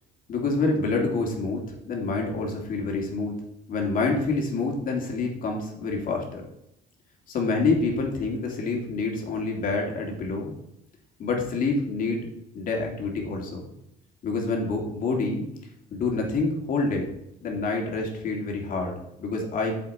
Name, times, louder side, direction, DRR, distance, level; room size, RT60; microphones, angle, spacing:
voice 1, 0.3-3.3 3.7-6.4 7.3-10.5 11.2-12.2 12.5-13.6 14.2-15.4 15.9-17.1 17.4-19.8, left 3 dB, 55° left, 1 dB, 2.5 m, -27 dB
8.6 x 6.9 x 4.4 m, 0.80 s
cardioid pair, 110°, 17 cm